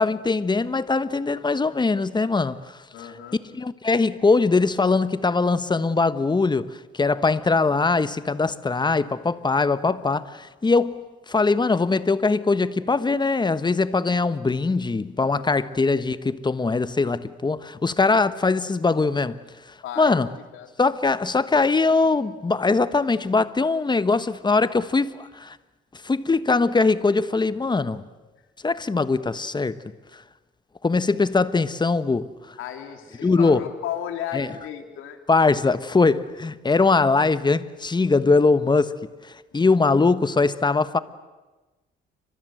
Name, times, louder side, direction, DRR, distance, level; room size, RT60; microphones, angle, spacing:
voice 1, 0.0-2.8 3.5-19.4 20.0-20.3 20.8-25.6 26.0-28.0 28.6-29.8 30.8-32.3 33.2-33.6 34.3-34.5 35.3-39.0 39.3-41.0, left 3 dB, 20° left, 1.3 m, -21 dB
voice 2, 2.9-3.4 19.8-20.7 32.6-35.2 39.5-39.6, left 10 dB, 90° left, 3.2 m, -34 dB
29.5 x 25.5 x 7.9 m
cardioid pair, 90°, 20 cm